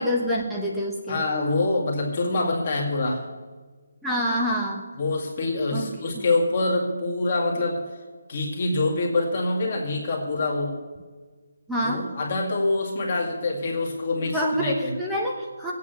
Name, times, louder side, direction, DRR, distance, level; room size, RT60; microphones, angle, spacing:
voice 1, 0.0-1.2 4.0-4.8 5.7-5.9 11.7-12.1 14.2-15.7, equal, ahead, -4 dB, 1.0 m, -26 dB
voice 2, 1.1-3.3 5.0-7.8 8.3-10.8 11.8-14.9, left 2 dB, 25° left, -2 dB, 2.2 m, -25 dB
18.5 x 8.7 x 7.1 m, 1.4 s
hypercardioid pair, 180°, 0 cm